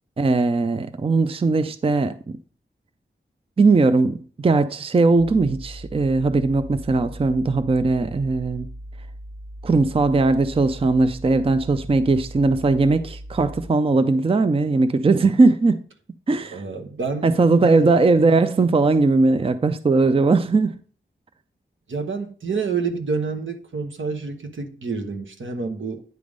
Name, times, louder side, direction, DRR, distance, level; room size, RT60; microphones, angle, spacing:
voice 1, 0.2-2.4 3.6-8.7 9.6-15.8 16.3-16.6 17.2-20.8, right 3 dB, 30° right, 0.4 m, -19 dB
sound 1, 5.2-13.7, equal, 55° right, 1.9 m, -39 dB
voice 2, 16.5-17.3 17.6-18.0 21.9-26.0, right 4 dB, 80° right, 1.0 m, -28 dB
9.4 x 3.5 x 5.1 m
wide cardioid pair, 85°, 20 cm